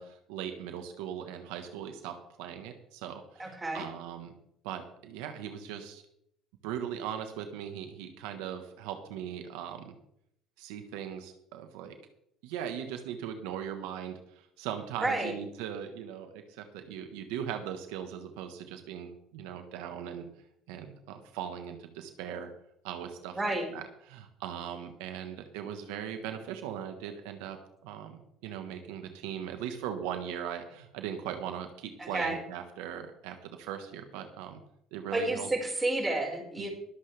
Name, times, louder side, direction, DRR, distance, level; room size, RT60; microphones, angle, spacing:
voice 1, 0.0-4.3 4.6-6.0 6.6-9.9 10.6-12.0 12.4-20.3 20.7-22.5 22.8-27.6 27.8-34.6 34.9-35.5 36.6-36.7, right 9 dB, 85° right, 6 dB, 1.4 m, -39 dB
voice 2, 3.4-3.9 15.0-15.3 23.3-23.7 32.0-32.4 35.1-36.7, right 2 dB, 15° right, 0 dB, 5.2 m, -30 dB
23.0 x 7.8 x 3.5 m, 0.75 s
supercardioid pair, 90°, 0 cm